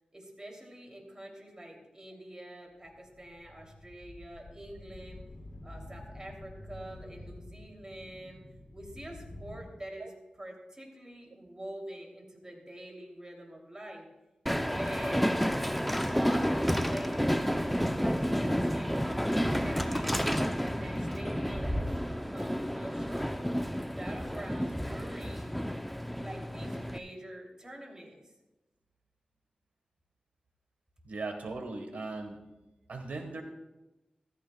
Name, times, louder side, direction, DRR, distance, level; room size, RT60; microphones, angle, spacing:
voice 1, 0.1-5.2 5.6-8.4 8.7-10.1 10.4-14.1 14.5-15.3 15.8-18.9 19.5-20.5 20.8-23.5 23.9-25.6 26.2-28.2, right 1 dB, 30° right, 0 dB, 3.0 m, -46 dB
sound 1, 2.8-9.7, left 1 dB, 50° left, 4.1 m, -48 dB
Train, 14.5-27.0, equal, ahead, 0.6 m, -30 dB
voice 2, 31.0-32.4 32.9-33.4, right 3 dB, 90° right, 5 dB, 1.4 m, -38 dB
14.5 x 14.0 x 2.3 m, 1.0 s
cardioid pair, 60°, 2 cm